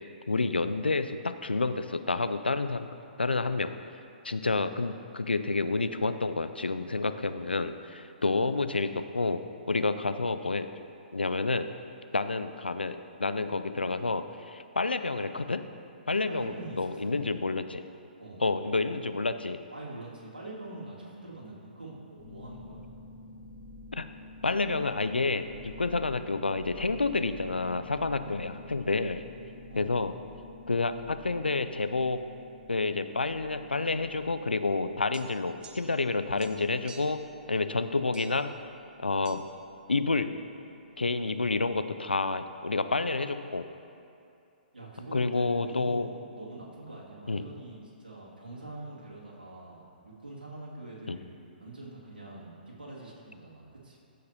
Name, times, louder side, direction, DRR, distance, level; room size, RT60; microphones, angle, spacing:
voice 1, 0.3-2.9 3.2-3.7 4.2-9.4 9.7-10.7 11.1-11.7 12.1-15.6 16.1-17.8 18.4-19.6 23.9-24.1 24.4-29.2 29.8-30.1 30.7-32.2 32.7-37.2 37.5-38.5 39.0-39.4 39.9-40.3 41.0-43.7 45.1-46.1 47.3-47.5 51.1-51.2, left 3 dB, 90° left, 10 dB, 0.4 m, -29 dB
voice 2, 16.3-17.1 18.2-18.4 19.7-22.8 29.7-30.0 44.7-54.0, right 2 dB, 80° right, -6 dB, 2.2 m, -44 dB
sound 1, 22.2-41.7, left 2 dB, 25° left, 1.8 m, -50 dB
sound 2, 35.1-36.1 36.4-37.3 38.1-38.5 39.2-39.4, right 5 dB, 15° right, 0.5 m, -52 dB
15.0 x 6.5 x 2.9 m, 2.6 s
figure-of-eight pair, 125°, 5 cm